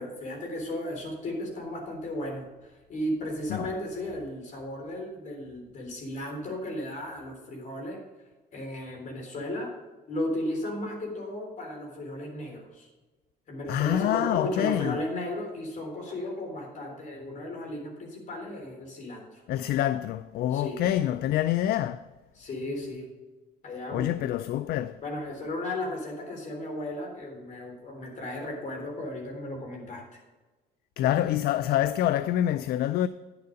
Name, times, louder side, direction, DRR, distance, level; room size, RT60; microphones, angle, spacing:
voice 1, 0.0-8.0 8.5-9.7 10.1-12.9 13.5-19.4 20.5-20.9 22.4-23.1 23.6-24.2 25.0-30.2, left 1 dB, 50° left, 3.6 m, -35 dB
voice 2, 13.7-15.0 19.5-22.1 23.9-25.0 31.0-33.1, left 12 dB, 65° left, 0.4 m, -26 dB
10.5 x 6.9 x 5.1 m
cardioid pair, 110°, 17 cm